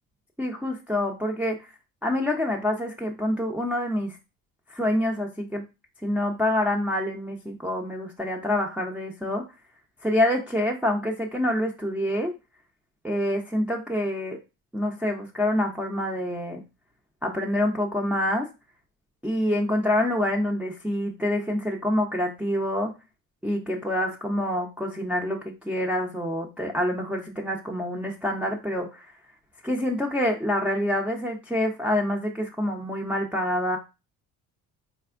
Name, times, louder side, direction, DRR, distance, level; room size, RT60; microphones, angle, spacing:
voice 1, 0.4-1.6 2.0-4.2 4.7-5.6 6.0-9.4 10.0-12.3 13.0-14.4 14.7-16.6 17.2-18.5 19.2-22.9 23.4-29.1 29.6-33.8, left 1 dB, 5° right, -1 dB, 0.7 m, -26 dB
4.1 x 3.4 x 2.5 m, 0.27 s
supercardioid pair, 70°, 42 cm